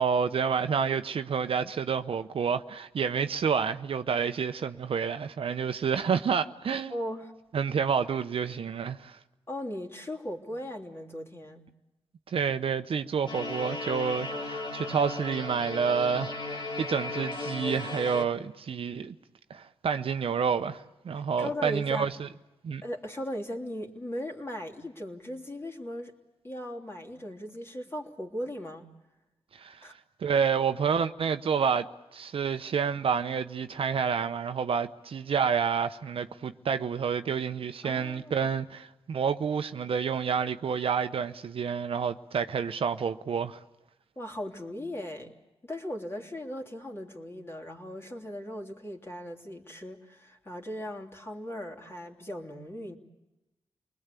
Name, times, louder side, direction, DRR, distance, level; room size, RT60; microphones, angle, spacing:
voice 1, 0.0-6.9 7.5-9.2 12.3-19.1 19.5-22.3 22.6-22.8 29.5-29.9 30.2-43.6, right 6 dB, 65° right, 0.9 m, -29 dB
voice 2, 6.9-7.3 9.5-11.6 21.4-22.1 22.8-26.1 26.4-28.9 29.8-29.9 37.8-38.5 44.1-45.3 45.6-53.0, left 1 dB, 25° left, 3.2 m, -38 dB
sound 1, 13.3-18.2, left 3 dB, 50° left, 2.1 m, -35 dB
28.5 x 20.5 x 8.4 m
cardioid pair, 80°, 10 cm